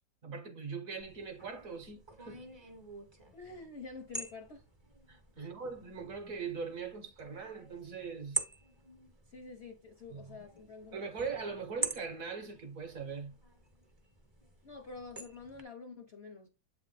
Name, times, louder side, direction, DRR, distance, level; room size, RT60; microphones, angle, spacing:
voice 1, 0.2-2.4 5.1-8.4 10.1-10.4 10.9-13.4, right 5 dB, 55° right, 1.0 m, -41 dB
sound 1, 1.0-15.6, right 3 dB, 30° right, 0.4 m, -45 dB
voice 2, 3.3-4.6 5.4-5.6 9.3-11.3 14.6-16.5, left 4 dB, 60° left, 0.6 m, -48 dB
7.8 x 3.4 x 4.0 m
omnidirectional pair, 2.1 m